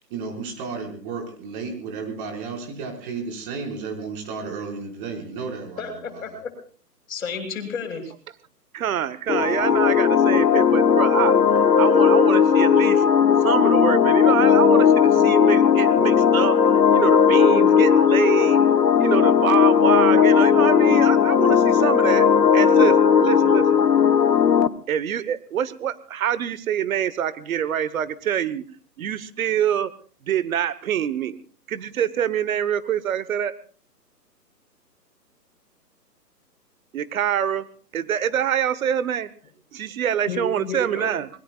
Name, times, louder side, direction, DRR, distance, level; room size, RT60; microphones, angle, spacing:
voice 1, 0.1-6.4, right 4 dB, 30° right, 1 dB, 5.4 m, -33 dB
voice 2, 5.8-6.5 7.1-8.1 40.3-41.1, left 4 dB, 55° left, 5 dB, 7.0 m, -31 dB
voice 3, 8.7-13.0 13.4-18.6 19.0-22.3 22.5-23.6 24.9-28.6 29.0-29.9 30.3-31.4 31.7-33.5 36.9-37.7 37.9-39.3 39.7-41.3, right 9 dB, 55° right, 15 dB, 1.3 m, -25 dB
sound 1, 9.3-24.7, left 7 dB, 85° left, 1.3 m, -17 dB
27.0 x 21.5 x 2.4 m, 0.43 s
hypercardioid pair, 150°, 49 cm